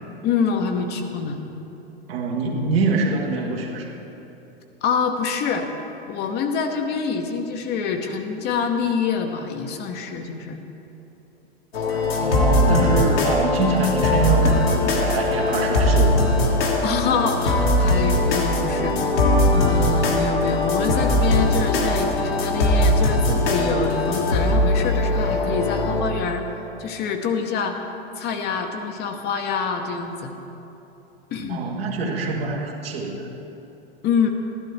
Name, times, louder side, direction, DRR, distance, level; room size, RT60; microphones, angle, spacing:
voice 1, 0.2-1.4 4.8-5.7 6.1-10.6 16.8-27.8 28.2-30.3 31.3-31.6 34.0-34.3, left 5 dB, 30° left, 5 dB, 0.9 m, -26 dB
voice 2, 2.1-3.9 12.1-16.4 31.5-33.3, right 4 dB, 70° right, -2 dB, 1.7 m, -25 dB
sound 1, 11.7-26.0, left 1 dB, 70° left, 1.5 m, -20 dB
13.0 x 11.5 x 3.3 m, 3.0 s
figure-of-eight pair, 95°, 31 cm